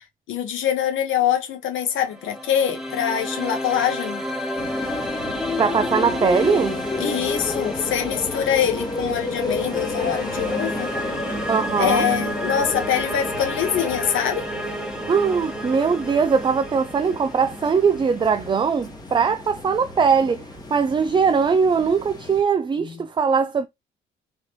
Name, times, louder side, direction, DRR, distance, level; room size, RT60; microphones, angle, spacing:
voice 1, 0.3-4.2 7.0-10.9 11.8-14.5 22.8-22.9, left 9 dB, 80° left, 1.2 m, -24 dB
sound 1, 1.9-19.0, equal, 5° right, 1.0 m, -31 dB
sound 2, 4.6-22.4, left 3 dB, 20° left, 1.2 m, -32 dB
voice 2, 5.6-6.8 11.5-12.1 15.1-20.5 20.7-23.7, right 6 dB, 25° right, 0.4 m, -20 dB
3.8 x 3.2 x 2.9 m
cardioid pair, 90°, 20 cm